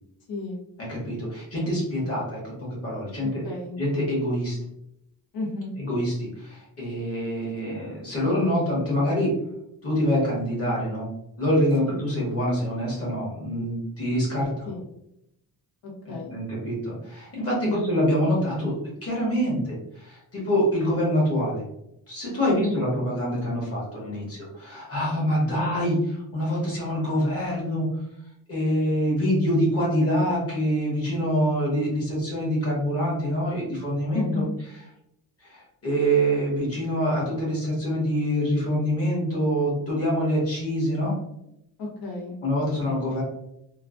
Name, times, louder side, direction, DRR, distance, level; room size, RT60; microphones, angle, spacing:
voice 1, 0.8-3.4 3.8-4.6 5.8-9.4 9.8-11.1 11.4-14.7 16.0-18.7 19.0-21.6 22.1-27.9 28.5-34.4 35.4-41.2 42.4-43.2, equal, 35° left, -4 dB, 1.2 m, -25 dB
voice 2, 3.2-3.8 5.3-5.7 11.8-12.0 14.7-14.8 15.8-16.4 17.6-18.0 22.4-22.8 25.5-25.7 34.1-34.5 41.8-42.4, left 2 dB, 60° left, -1 dB, 0.9 m, -32 dB
3.0 x 2.3 x 2.4 m, 0.82 s
wide cardioid pair, 165°, 40 cm